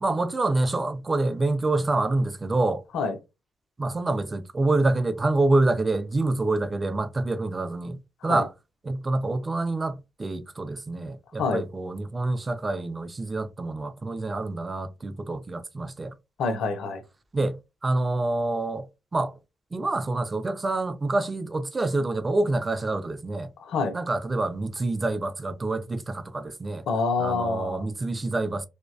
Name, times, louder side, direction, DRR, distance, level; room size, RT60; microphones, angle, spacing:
voice 1, 0.0-2.8 3.8-8.5 8.8-16.1 17.3-19.4 19.7-23.5 23.9-26.8 27.2-28.7, right 2 dB, 30° right, 0.4 m, -27 dB
voice 2, 16.4-17.0 23.6-24.0 26.9-27.8, left 4 dB, 75° left, 0.5 m, -26 dB
2.4 x 2.1 x 2.4 m
hypercardioid pair, 45°, 0 cm